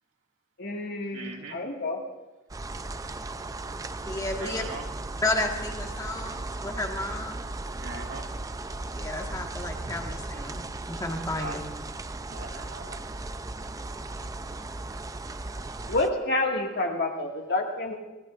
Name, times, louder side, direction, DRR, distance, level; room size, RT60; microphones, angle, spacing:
voice 1, 0.6-2.0 15.9-18.0, left 2 dB, 55° left, 1 dB, 2.0 m, -28 dB
voice 2, 1.1-1.6 4.4-4.9 7.8-8.2 11.3-11.6 12.3-13.0 16.5-17.3, right 3 dB, 75° right, 0 dB, 2.2 m, -41 dB
sound 1, 2.5-16.1, right 2 dB, 15° right, 0.4 m, -36 dB
voice 3, 4.0-4.7 5.2-7.4 9.0-11.6, left 2 dB, 15° left, 2 dB, 1.5 m, -32 dB
23.0 x 16.5 x 2.5 m, 1.1 s
head